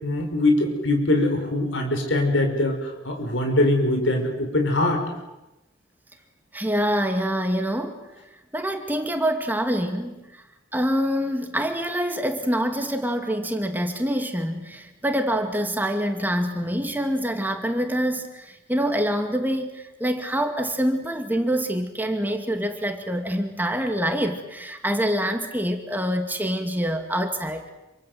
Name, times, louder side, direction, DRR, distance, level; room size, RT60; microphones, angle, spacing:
voice 1, 0.0-5.0, left 1 dB, 85° left, 4 dB, 5.3 m, -22 dB
voice 2, 6.5-8.0 8.5-10.4 10.7-27.7, equal, 10° right, 5 dB, 2.3 m, -26 dB
27.0 x 25.5 x 8.0 m, 0.95 s
head